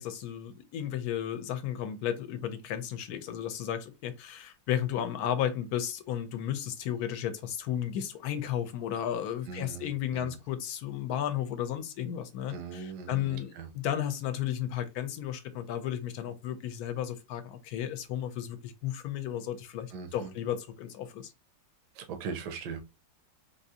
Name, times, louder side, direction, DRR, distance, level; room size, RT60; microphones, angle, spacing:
voice 1, 0.0-21.3, left 10 dB, 70° left, 1.1 m, -34 dB
voice 2, 9.5-10.4 12.5-13.7 19.9-20.3 21.9-22.8, right 5 dB, 85° right, 1.3 m, -40 dB
3.6 x 2.6 x 2.7 m
omnidirectional pair, 1.7 m